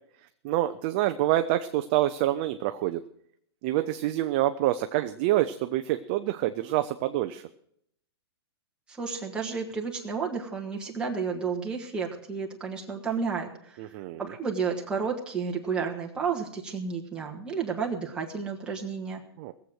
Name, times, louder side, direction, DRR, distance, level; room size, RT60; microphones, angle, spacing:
voice 1, 0.4-3.0 3.6-7.4 13.8-14.2 19.4-19.5, right 14 dB, 25° right, 9 dB, 0.4 m, -26 dB
voice 2, 8.9-13.8 14.2-19.2, right 5 dB, 5° right, -1 dB, 1.5 m, -31 dB
18.0 x 7.8 x 6.3 m, 0.69 s
hypercardioid pair, 165°, 14 cm